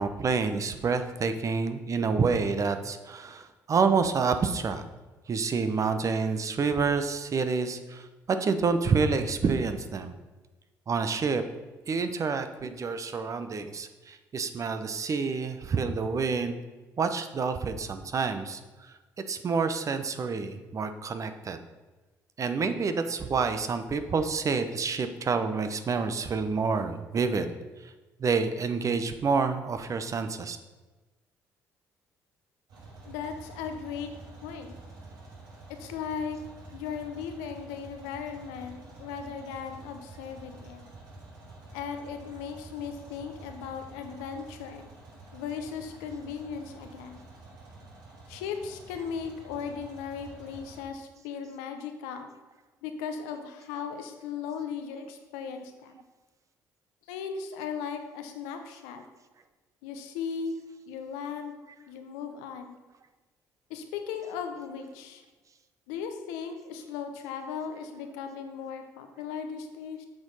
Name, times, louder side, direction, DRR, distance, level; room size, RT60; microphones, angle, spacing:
voice 1, 0.0-4.8 5.3-10.2 10.9-11.4 11.9-16.6 17.0-18.6 19.3-21.6 22.4-27.5 28.2-30.6, right 5 dB, 45° right, 9 dB, 0.8 m, -28 dB
sound 1, 32.7-50.8, right 2 dB, 65° right, 2.4 m, -49 dB
voice 2, 33.1-34.1 34.4-34.7 35.7-36.4 36.7-40.8 41.7-44.8 45.3-47.3 48.3-52.3 52.8-56.0 57.1-59.0 59.8-60.5 60.9-61.6 61.9-62.7 63.7-65.2 65.9-70.1, left 6 dB, 85° left, 6 dB, 0.8 m, -37 dB
7.7 x 4.4 x 5.5 m, 1.2 s
hypercardioid pair, 55°, 8 cm